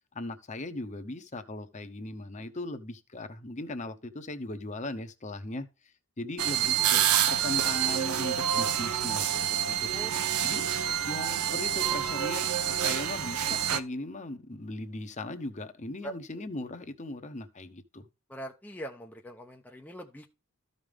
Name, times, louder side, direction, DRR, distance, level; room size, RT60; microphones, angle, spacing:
voice 1, 0.1-5.7 6.2-9.2 9.5-9.9 10.4-10.6 11.1-18.1, left 2 dB, 35° left, 1.0 m, -38 dB
sound 1, 6.4-13.8, right 10 dB, 85° right, 0.8 m, -27 dB
voice 2, 18.3-20.3, right 1 dB, 5° left, 0.8 m, -42 dB
13.5 x 5.3 x 3.5 m
head